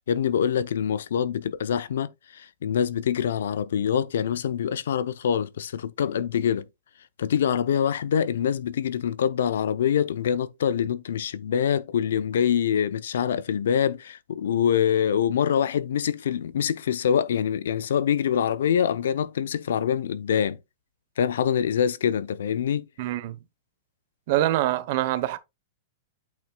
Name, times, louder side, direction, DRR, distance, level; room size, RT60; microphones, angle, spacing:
voice 1, 0.1-6.6 7.2-20.6 21.2-22.9, left 8 dB, 85° left, 0.7 m, -25 dB
voice 2, 23.0-23.4 24.3-25.4, right 14 dB, 55° right, 1.0 m, -24 dB
8.4 x 6.4 x 2.3 m
hypercardioid pair, 140°, 0 cm